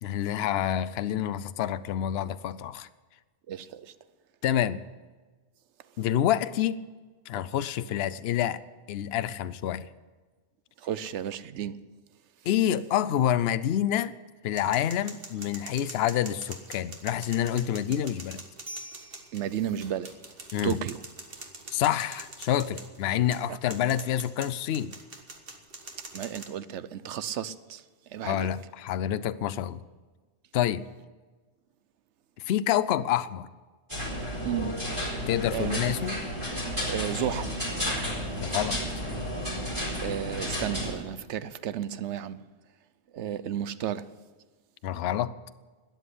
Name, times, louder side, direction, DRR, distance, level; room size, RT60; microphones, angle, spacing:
voice 1, 0.0-2.9 4.4-4.8 6.0-6.8 7.3-8.6 8.9-9.9 12.5-14.1 14.4-18.4 20.5-20.8 21.7-24.9 28.2-29.8 30.5-30.8 32.4-33.5 35.3-36.2 38.4-38.8 44.8-45.3, left 11 dB, 70° left, 0.8 m, -27 dB
voice 2, 3.5-3.9 10.8-11.8 19.3-20.1 20.6-21.0 23.5-23.6 26.1-27.8 28.1-28.5 34.4-34.8 35.5-35.9 36.9-37.5 40.0-42.4 43.1-44.1, right 10 dB, 85° right, 1.0 m, -33 dB
sound 1, 14.5-26.4, right 3 dB, 55° right, 1.7 m, -44 dB
sound 2, 33.9-40.9, equal, 25° right, 4.6 m, -32 dB
13.0 x 9.2 x 9.9 m
omnidirectional pair, 1.1 m